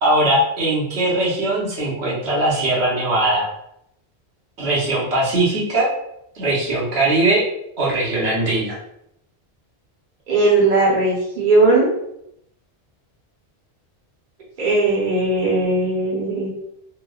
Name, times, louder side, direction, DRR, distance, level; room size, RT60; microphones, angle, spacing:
voice 1, 0.0-3.5 4.6-5.9 6.4-7.4 7.8-8.8, right 2 dB, 75° right, -5 dB, 1.1 m, -20 dB
voice 2, 10.3-11.9 14.6-16.5, right 2 dB, 50° right, -4 dB, 0.9 m, -18 dB
3.0 x 2.1 x 2.3 m, 0.77 s
omnidirectional pair, 1.1 m